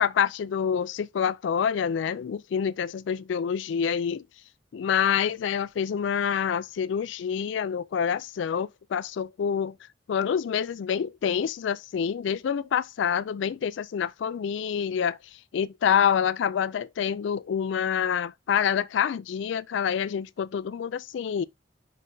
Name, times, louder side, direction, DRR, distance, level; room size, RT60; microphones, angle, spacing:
voice 1, 0.0-4.2 4.7-9.8 10.1-15.2 15.5-21.4, left 7 dB, 70° left, 0.3 m, -27 dB
5.6 x 5.0 x 3.7 m
head